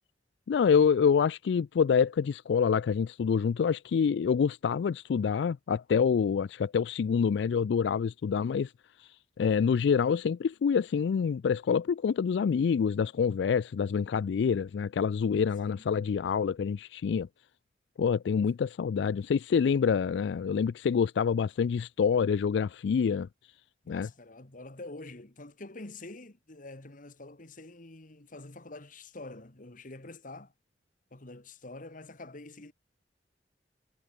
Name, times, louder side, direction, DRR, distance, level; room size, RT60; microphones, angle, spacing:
voice 1, 0.5-8.7 9.0-17.3 18.0-23.3 23.9-24.1, left 6 dB, 75° left, 0.3 m, -26 dB
voice 2, 23.8-30.5 31.1-32.7, left 2 dB, 50° left, 1.8 m, -46 dB
head